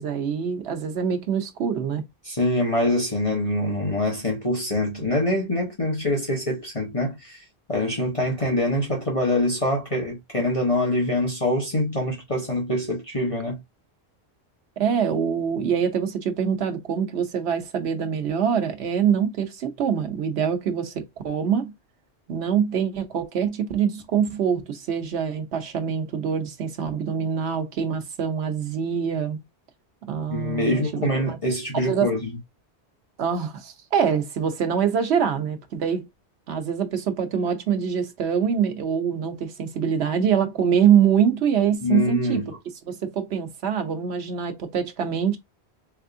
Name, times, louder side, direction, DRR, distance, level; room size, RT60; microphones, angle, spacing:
voice 1, 0.0-2.0 14.8-21.7 22.3-29.4 30.1-31.4 31.7-32.1 33.2-36.1 36.5-42.5 42.8-45.4, right 7 dB, 85° right, 1.0 m, -24 dB
voice 2, 2.2-7.4 7.7-13.6 30.3-32.4 41.8-42.6, left 1 dB, 30° left, 1.2 m, -24 dB
3.5 x 3.4 x 2.5 m
omnidirectional pair, 1.1 m